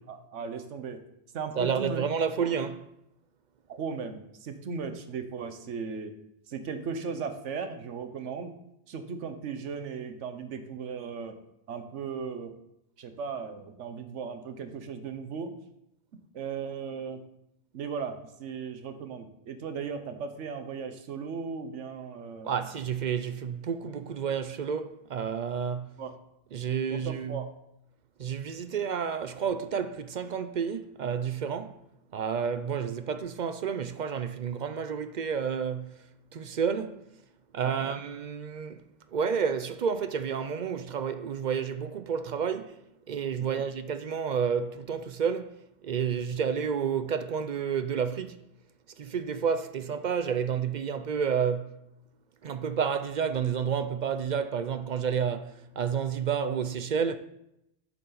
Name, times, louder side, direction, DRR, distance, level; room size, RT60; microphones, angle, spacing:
voice 1, 0.1-1.0 1.3-2.0 2.4-2.6 3.7-6.1 6.5-8.5 8.9-11.4 11.7-12.5 13.0-15.5 16.3-17.2 17.7-22.5 26.0-26.1 26.9-27.5 37.6-37.9 43.5-43.6, right 5 dB, 85° right, 1.2 m, -37 dB
voice 2, 1.6-2.8 22.4-25.9 26.5-27.4 28.2-31.8 32.1-35.9 36.3-37.1 37.5-38.8 39.1-42.8 43.1-48.4 49.0-51.8 52.4-57.2, right 7 dB, 55° right, 0.5 m, -30 dB
11.5 x 6.9 x 3.9 m
omnidirectional pair, 1.2 m